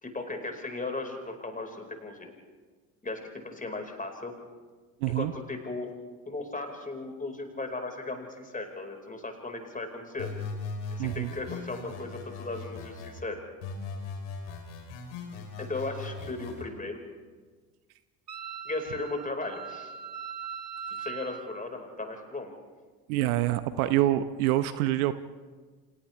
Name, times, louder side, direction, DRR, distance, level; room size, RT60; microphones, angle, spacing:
voice 1, 0.0-2.3 3.0-4.3 5.1-5.9 6.2-10.3 10.9-13.4 15.6-17.0 18.6-19.9 21.0-22.5, left 2 dB, 15° left, 4 dB, 4.9 m, -36 dB
voice 2, 5.0-5.3 11.0-11.3 23.1-25.1, right 14 dB, 65° right, 13 dB, 0.9 m, -26 dB
sound 1, 10.2-13.2 13.6-16.6, left 4 dB, 65° left, 3.6 m, -39 dB
Wind instrument woodwind instrument, 18.3-21.5, right 7 dB, 90° right, 0.9 m, -40 dB
30.0 x 27.5 x 3.4 m, 1.4 s
figure-of-eight pair, 55°, 47 cm